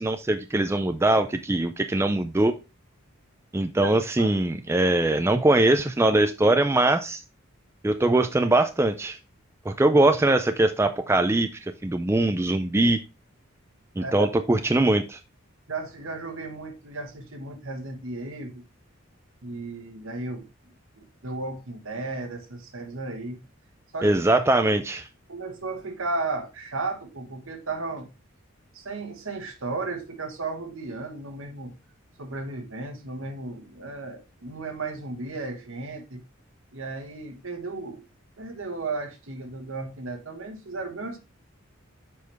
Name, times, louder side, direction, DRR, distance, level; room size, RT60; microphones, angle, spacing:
voice 1, 0.0-2.5 3.5-7.2 7.8-9.2 9.7-11.5 11.8-13.0 14.0-15.2 24.0-25.1, right 2 dB, 10° right, 0.3 m, -22 dB
voice 2, 15.7-18.6 19.4-20.5 20.9-23.4 23.9-24.2 25.3-28.1 28.7-31.7 32.2-36.2 36.7-38.0 38.4-41.2, right 3 dB, 70° right, 1.3 m, -34 dB
6.9 x 4.7 x 3.4 m
head